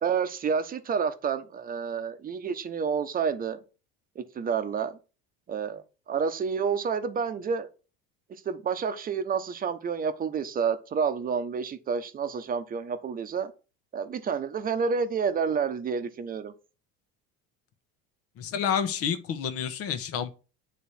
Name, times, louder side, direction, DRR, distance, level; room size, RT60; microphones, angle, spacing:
voice 1, 0.0-3.6 4.2-5.0 5.5-7.7 8.4-13.5 13.9-16.5, right 6 dB, 30° right, 0.9 m, -29 dB
voice 2, 18.4-20.4, left 8 dB, 50° left, 1.1 m, -29 dB
9.4 x 3.4 x 4.3 m
supercardioid pair, 110°, 30 cm